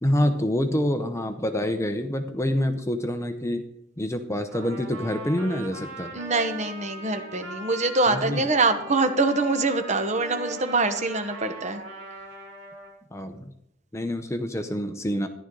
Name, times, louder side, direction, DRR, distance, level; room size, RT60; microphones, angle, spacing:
voice 1, 0.0-3.6 4.0-6.1 8.1-8.5 13.1-13.5 13.9-15.3, left 1 dB, 15° left, 7 dB, 0.7 m, -26 dB
Trumpet, 4.5-12.9, right 1 dB, 65° right, 5.6 m, -40 dB
voice 2, 6.1-11.8, right 3 dB, 35° right, 7 dB, 1.1 m, -24 dB
13.5 x 11.0 x 3.8 m, 0.79 s
head